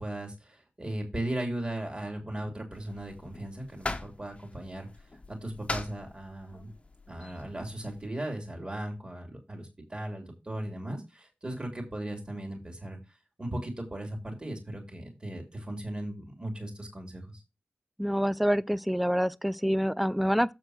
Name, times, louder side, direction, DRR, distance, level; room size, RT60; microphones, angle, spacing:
voice 1, 0.0-6.7 7.1-17.4, right 1 dB, 25° right, 3.1 m, -37 dB
sound 1, 2.7-8.1, left 2 dB, 35° left, 1.1 m, -41 dB
voice 2, 18.0-20.5, equal, ahead, 0.4 m, -26 dB
7.5 x 4.4 x 6.3 m
wide cardioid pair, 90°, 4 cm